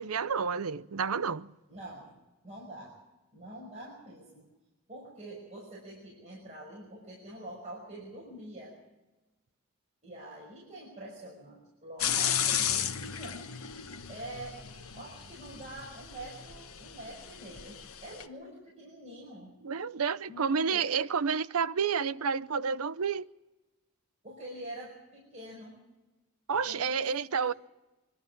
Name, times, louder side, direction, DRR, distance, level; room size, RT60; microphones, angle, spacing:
voice 1, 0.0-1.5 19.6-23.3 26.5-27.5, right 6 dB, 90° right, 0.6 m, -30 dB
voice 2, 1.7-2.2 2.4-3.0 3.3-4.5 4.9-8.7 10.0-13.4 14.1-14.6 15.0-19.5 20.3-20.9 24.2-25.8 26.6-27.1 27.4-27.6, right 1 dB, 30° right, 6.0 m, -45 dB
sound 1, 12.0-18.2, left 9 dB, 80° left, 1.1 m, -34 dB
24.5 x 12.5 x 9.7 m
head